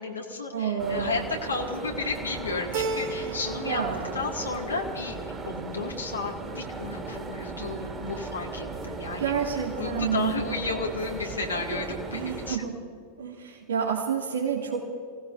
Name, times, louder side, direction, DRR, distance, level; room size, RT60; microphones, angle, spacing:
voice 1, 0.0-3.8 4.1-5.2 5.5-12.7, left 3 dB, 75° left, -1 dB, 2.3 m, -33 dB
voice 2, 0.5-1.3 3.2-4.2 9.2-10.4 12.1-12.8 13.2-14.8, right 7 dB, 65° right, -3 dB, 2.2 m, -29 dB
sound 1, 0.8-12.6, right 3 dB, 15° right, 2.3 m, -37 dB
Keyboard (musical), 2.7-3.8 4.2-4.9, right 4 dB, 50° right, 1.0 m, -33 dB
28.0 x 18.0 x 2.7 m, 2.5 s
figure-of-eight pair, 90°, 0 cm